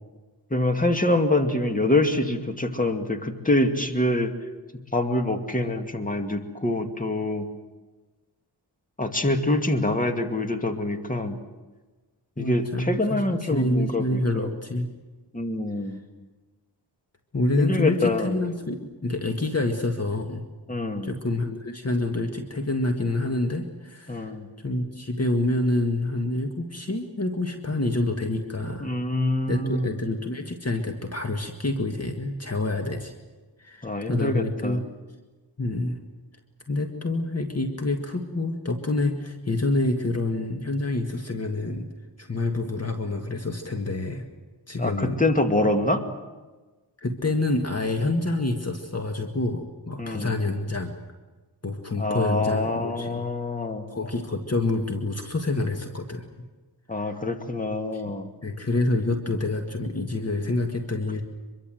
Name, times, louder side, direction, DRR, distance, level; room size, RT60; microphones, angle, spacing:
voice 1, 0.5-4.3 4.9-7.5 9.0-11.4 12.4-14.5 15.3-16.0 17.6-18.4 20.7-21.1 24.1-24.5 28.8-29.9 33.8-34.8 44.8-46.1 50.0-50.3 52.0-53.9 56.9-58.3, left 1 dB, 20° left, 5 dB, 2.3 m, -25 dB
voice 2, 12.4-14.9 17.3-20.4 21.0-28.9 29.5-33.1 33.6-34.8 35.6-36.0 36.7-41.9 42.2-44.3 44.7-45.2 47.0-50.9 51.6-53.2 53.9-56.5 57.0-57.1 57.9-58.0 58.4-61.2, left 2 dB, 35° left, 4 dB, 1.9 m, -27 dB
24.5 x 23.0 x 7.8 m, 1.3 s
wide cardioid pair, 80°, 43 cm